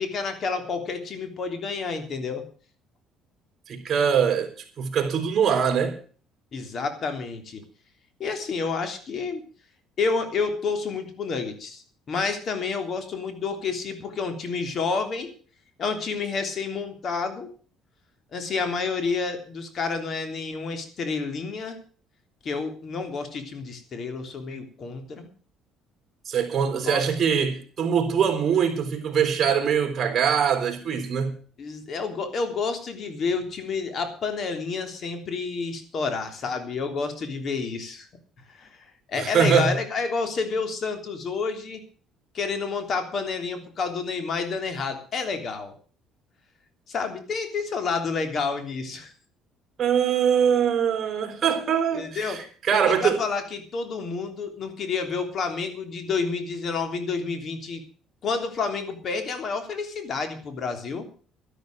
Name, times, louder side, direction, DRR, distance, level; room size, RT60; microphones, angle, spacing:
voice 1, 0.0-2.5 6.5-7.6 8.2-9.4 10.0-15.3 15.8-17.5 18.3-21.8 22.4-25.3 26.7-27.0 31.6-38.1 38.5-41.8 42.3-45.7 46.9-49.1 51.9-52.4 52.7-57.8 58.2-61.1, left 4 dB, 45° left, 3.2 m, -29 dB
voice 2, 3.7-4.5 4.8-6.0 26.3-31.4 39.2-39.7 49.8-53.2, right 7 dB, 40° right, 4.2 m, -23 dB
12.5 x 12.0 x 6.4 m
cardioid pair, 115°, 0 cm